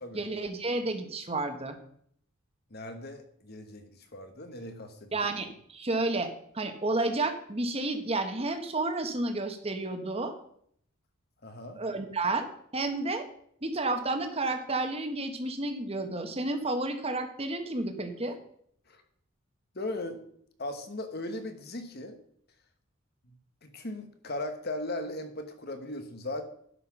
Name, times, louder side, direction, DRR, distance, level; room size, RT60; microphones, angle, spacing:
voice 1, 0.1-1.8 5.1-10.3 11.7-12.5 12.7-13.2 13.6-18.4, right 2 dB, 30° right, 6 dB, 1.2 m, -31 dB
voice 2, 2.7-5.2 11.4-11.8 18.9-19.0 19.7-20.2 20.6-22.2 23.2-23.3 23.6-26.4, left 1 dB, 45° left, 7 dB, 1.3 m, -38 dB
11.0 x 5.9 x 6.0 m, 0.65 s
head